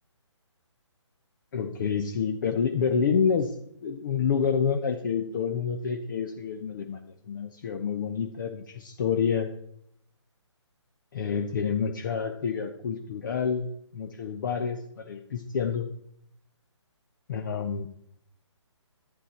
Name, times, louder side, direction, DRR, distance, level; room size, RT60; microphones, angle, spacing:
voice 1, 1.5-3.5 3.8-7.0 7.3-9.5 11.1-13.7 13.9-15.9 17.3-17.9, left 6 dB, 40° left, 6 dB, 0.8 m, -28 dB
11.5 x 8.6 x 4.3 m, 0.71 s
figure-of-eight pair, 145°, 16 cm